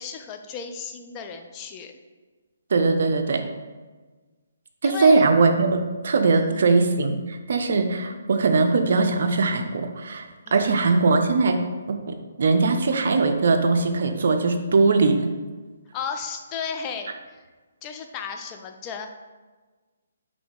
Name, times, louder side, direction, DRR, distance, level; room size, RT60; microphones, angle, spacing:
voice 1, 0.0-1.9 4.8-5.2 6.3-6.6 10.5-10.9 15.9-17.4 17.8-19.1, left 6 dB, 25° left, 5 dB, 0.4 m, -34 dB
voice 2, 2.7-3.5 4.8-10.3 10.5-11.6 11.9-15.3, right 3 dB, 60° right, 5 dB, 0.5 m, -20 dB
4.0 x 3.3 x 3.4 m, 1.3 s
hypercardioid pair, 150°, 0 cm